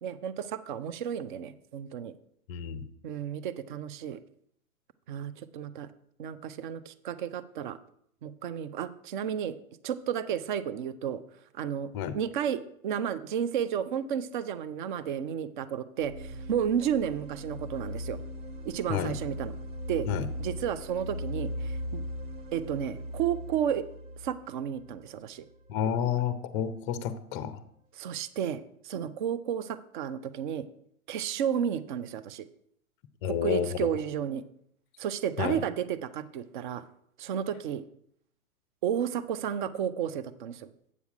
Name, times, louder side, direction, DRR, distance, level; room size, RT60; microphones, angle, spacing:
voice 1, 0.0-2.1 3.0-4.2 5.1-5.9 6.2-7.8 8.2-9.6 9.8-11.2 11.5-11.9 12.1-18.2 18.6-19.5 19.9-20.1 20.4-22.0 22.5-23.9 24.2-25.4 28.0-30.6 31.1-32.5 33.3-34.4 35.0-36.8 37.2-37.8 38.8-40.7, right 9 dB, 35° right, 14 dB, 0.5 m, -32 dB
voice 2, 2.5-2.8 11.9-12.2 18.9-19.1 20.1-20.3 25.7-27.6 33.2-33.9 35.4-35.6, left 9 dB, 20° left, 12 dB, 0.5 m, -30 dB
sound 1, 16.0-25.8, equal, 60° right, 0.9 m, -39 dB
8.4 x 7.0 x 4.8 m, 0.70 s
hypercardioid pair, 120°, 44 cm